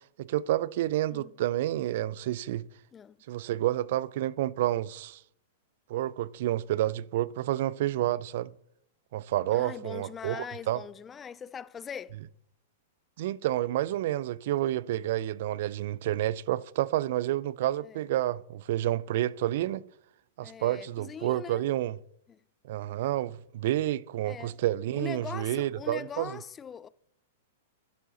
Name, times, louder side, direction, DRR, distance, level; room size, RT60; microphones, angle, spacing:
voice 1, 0.2-2.6 3.3-5.2 5.9-8.5 9.1-10.8 13.2-19.8 20.4-22.0 22.7-26.4, right 14 dB, 60° right, 0.3 m, -29 dB
voice 2, 9.5-12.2 17.8-18.1 20.4-21.7 22.3-22.4 24.2-24.6 24.9-26.9, left 7 dB, 20° left, 0.3 m, -41 dB
11.0 x 5.7 x 3.8 m
hypercardioid pair, 125°, 0 cm